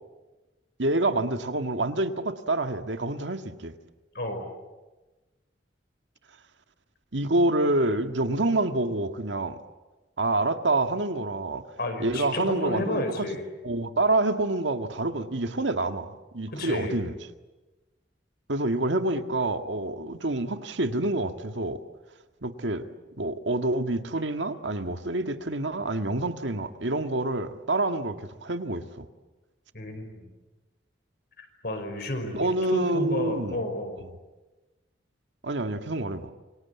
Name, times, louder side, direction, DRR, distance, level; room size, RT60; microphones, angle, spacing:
voice 1, 0.8-3.7 7.1-9.6 10.2-11.6 12.0-13.3 13.6-17.1 18.5-21.8 22.4-22.9 23.1-29.1 32.3-33.6 34.1-34.2 35.4-36.3, right 2 dB, 90° right, 8 dB, 1.8 m, -27 dB
voice 2, 4.1-4.5 11.8-13.4 16.5-17.0 29.7-30.3 31.4-34.0, left 1 dB, 60° left, 6 dB, 5.4 m, -31 dB
28.0 x 24.5 x 8.4 m, 1.1 s
head